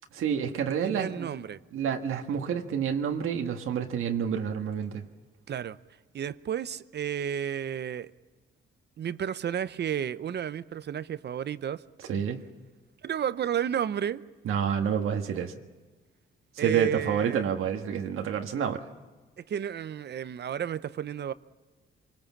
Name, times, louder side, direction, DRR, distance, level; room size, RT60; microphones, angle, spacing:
voice 1, 0.1-1.3 1.7-5.0 12.1-12.4 14.4-15.5 16.6-18.8, right 7 dB, 80° right, 1.6 m, -29 dB
voice 2, 0.8-1.6 5.5-5.8 6.1-8.1 9.0-11.8 13.0-14.2 16.6-17.5 19.4-21.3, right 9 dB, 55° right, 0.7 m, -32 dB
26.0 x 19.5 x 7.3 m
cardioid pair, 105°, 21 cm